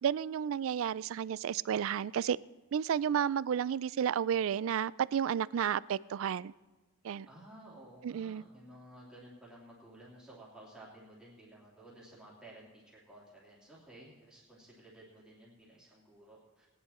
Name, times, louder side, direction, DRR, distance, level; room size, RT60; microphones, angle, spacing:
voice 1, 0.0-2.4 2.7-6.5 7.0-7.3 8.0-8.4, right 8 dB, 70° right, 21 dB, 0.3 m, -32 dB
voice 2, 7.3-16.7, right 1 dB, 5° right, -7 dB, 2.8 m, -54 dB
18.5 x 10.0 x 4.2 m, 1.2 s
head